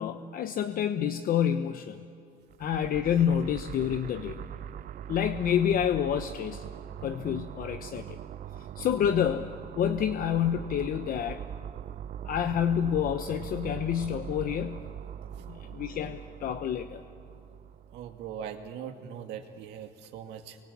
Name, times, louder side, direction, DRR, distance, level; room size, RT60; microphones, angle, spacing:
voice 1, 0.0-2.1 2.6-4.4 5.1-6.6 7.0-8.2 8.8-11.4 12.2-14.8 15.5-17.0, left 9 dB, 55° left, 9 dB, 1.0 m, -28 dB
sound 1, 2.5-18.7, right 9 dB, 55° right, 0.6 m, -42 dB
voice 2, 17.9-20.6, right 9 dB, 90° right, 5 dB, 2.4 m, -40 dB
29.0 x 24.0 x 8.6 m, 2.4 s
cardioid pair, 110°, 17 cm